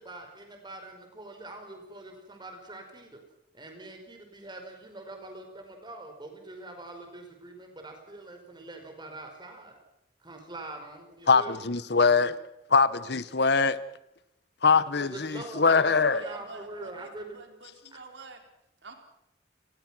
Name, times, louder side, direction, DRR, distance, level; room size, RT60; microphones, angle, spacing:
voice 1, 0.0-3.2 3.5-9.8 10.2-12.3 14.7-17.4 17.9-18.0, right 2 dB, 25° right, 5.0 m, -44 dB
voice 2, 11.3-12.4 12.7-13.8 14.6-16.2, left 4 dB, 60° left, 1.0 m, -22 dB
voice 3, 16.1-18.4 18.8-18.9, right 3 dB, 75° right, 4.1 m, -48 dB
28.5 x 20.0 x 6.2 m
head